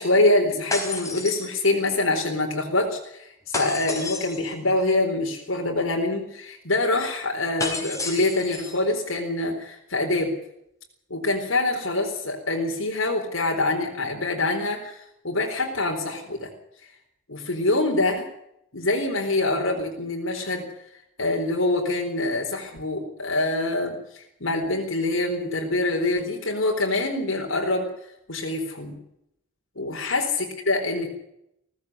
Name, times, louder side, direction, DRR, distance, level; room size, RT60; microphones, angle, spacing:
voice 1, 0.0-10.3 11.1-16.5 17.3-18.3 18.7-20.6 21.2-27.9 28.3-29.0 29.8-31.1, left 2 dB, 75° left, 1 dB, 4.2 m, -25 dB
sound 1, 0.7-2.0 3.5-4.5 7.6-8.8, left 3 dB, 15° left, 4.1 m, -31 dB
18.0 x 15.0 x 9.7 m, 0.78 s
head